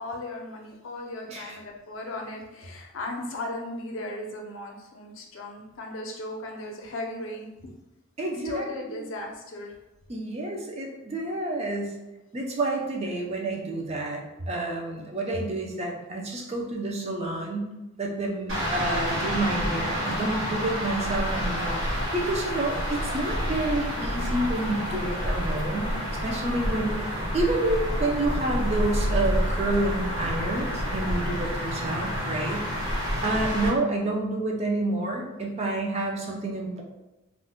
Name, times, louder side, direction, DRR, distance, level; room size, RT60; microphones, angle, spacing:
voice 1, 0.0-7.7 8.4-9.8, left 2 dB, 70° left, 1 dB, 0.5 m, -36 dB
voice 2, 8.2-8.7 10.1-11.9 12.3-17.7 18.0-25.9 26.2-36.8, right 2 dB, 30° right, 0 dB, 0.4 m, -29 dB
sound 1, 18.5-33.7, equal, 60° right, 1.0 m, -29 dB
2.4 x 2.1 x 3.5 m, 0.99 s
head